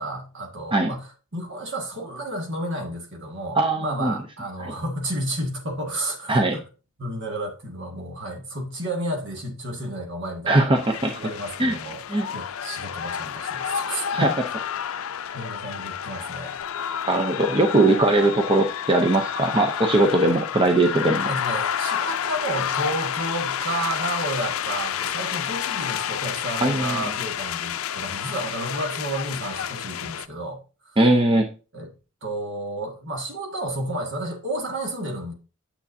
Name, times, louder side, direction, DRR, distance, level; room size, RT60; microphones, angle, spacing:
voice 1, 0.0-6.6 7.0-10.7 11.1-12.0 12.3-14.3 15.3-16.6 21.3-30.6 31.7-31.9 32.2-35.3, right 1 dB, 60° right, 1.8 m, -31 dB
voice 2, 3.5-4.2 6.3-6.6 10.5-11.2 11.6-11.7 12.1-12.3 14.1-14.3 17.1-21.3 26.6-27.1 31.0-31.5, right 2 dB, 25° right, 0.6 m, -20 dB
sound 1, 10.8-30.3, left 9 dB, 80° left, 0.4 m, -30 dB
9.4 x 7.1 x 2.7 m
head